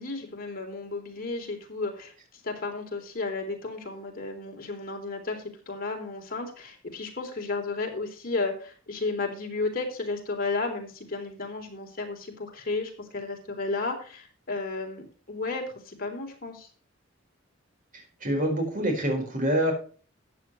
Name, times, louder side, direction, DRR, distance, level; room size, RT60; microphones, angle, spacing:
voice 1, 0.0-2.1 2.4-16.7, left 3 dB, 50° left, 1 dB, 3.5 m, -33 dB
voice 2, 18.2-19.7, right 1 dB, 45° right, 3 dB, 4.4 m, -25 dB
14.0 x 9.3 x 3.1 m, 0.40 s
head